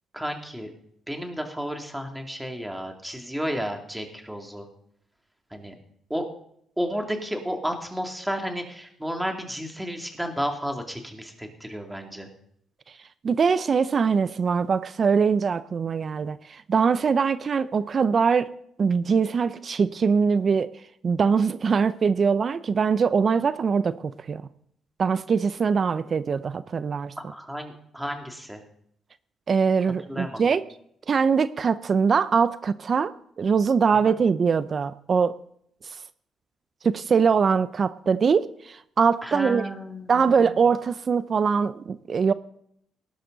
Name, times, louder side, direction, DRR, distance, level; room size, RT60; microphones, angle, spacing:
voice 1, 0.1-0.7 1.1-4.6 5.5-5.7 6.1-6.3 6.8-12.3 27.3-28.6 30.1-30.4 39.2-40.5, equal, 5° right, 3 dB, 2.7 m, -32 dB
voice 2, 13.2-18.5 18.8-20.7 21.0-24.4 25.0-27.1 29.5-30.6 31.1-33.1 33.4-35.3 36.8-39.7 40.1-42.3, right 5 dB, 45° right, 15 dB, 0.6 m, -22 dB
18.5 x 11.5 x 4.0 m, 0.70 s
cardioid pair, 90°, 0 cm